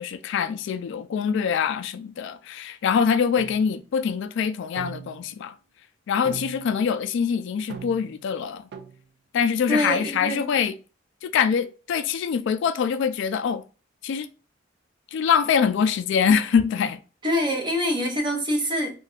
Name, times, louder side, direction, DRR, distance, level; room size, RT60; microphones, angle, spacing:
voice 1, 0.0-5.6 6.1-8.6 9.3-10.7 11.2-13.6 14.0-14.3 15.1-17.0, left 7 dB, 65° left, 0.3 m, -24 dB
sound 1, 3.4-3.7 4.8-5.4 6.2-6.8 7.7-8.2 8.7-9.0, right 6 dB, 60° right, 0.4 m, -39 dB
voice 2, 9.7-10.5 17.2-19.0, equal, 25° right, 0.7 m, -25 dB
2.6 x 2.3 x 3.4 m
head